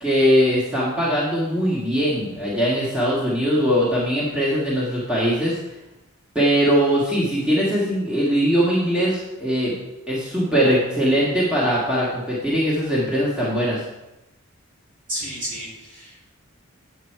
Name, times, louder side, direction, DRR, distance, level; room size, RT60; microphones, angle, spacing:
voice 1, 0.0-5.6 6.4-9.7 10.1-13.8, equal, 5° right, -8 dB, 1.9 m, -21 dB
voice 2, 15.1-16.2, equal, 40° right, -5 dB, 3.4 m, -31 dB
8.6 x 8.3 x 4.6 m, 0.98 s
head